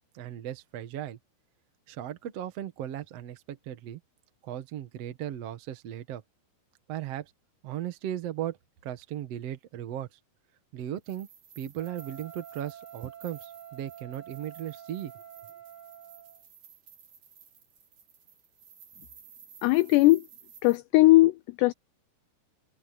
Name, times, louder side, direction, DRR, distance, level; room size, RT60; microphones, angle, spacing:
voice 1, 0.1-1.2 1.9-4.0 4.4-6.2 6.9-7.3 7.6-8.6 8.8-10.1 10.7-11.3 11.6-15.1, right 11 dB, 75° right, 1.4 m, -37 dB
sound 1, 11.0-20.8, right 7 dB, 45° right, 4.9 m, -54 dB
Wind instrument woodwind instrument, 11.7-16.4, right 10 dB, 20° left, 2.5 m, -48 dB
voice 2, 19.6-20.2 20.6-21.7, left 19 dB, 85° left, 2.4 m, -19 dB
omnidirectional pair, 5.4 m